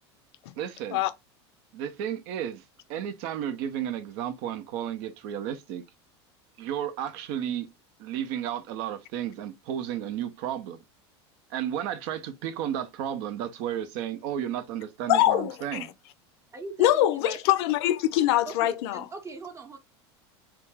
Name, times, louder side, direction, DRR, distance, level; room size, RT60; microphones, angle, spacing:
voice 1, 0.6-1.0 1.7-2.6 2.9-5.8 6.6-7.7 8.0-10.8 11.5-15.9, right 10 dB, 60° right, 0.5 m, -33 dB
voice 2, 15.1-15.9 16.8-19.0, left 13 dB, 70° left, 0.4 m, -23 dB
voice 3, 16.5-17.4 18.4-19.8, right 3 dB, 20° right, 0.7 m, -40 dB
2.4 x 2.3 x 3.1 m
hypercardioid pair, 100°, 14 cm